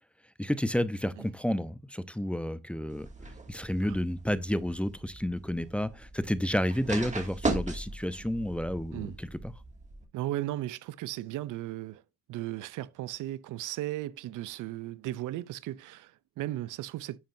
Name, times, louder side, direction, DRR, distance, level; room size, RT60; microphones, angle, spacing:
voice 1, 0.4-3.1 3.5-9.5, equal, 5° left, 0.8 m, -31 dB
sound 1, 2.9-10.1, right 2 dB, 25° right, 2.4 m, -38 dB
voice 2, 10.1-12.0 12.3-17.2, right 15 dB, 85° right, 0.7 m, -36 dB
10.5 x 7.5 x 2.7 m
cardioid pair, 90°, 30 cm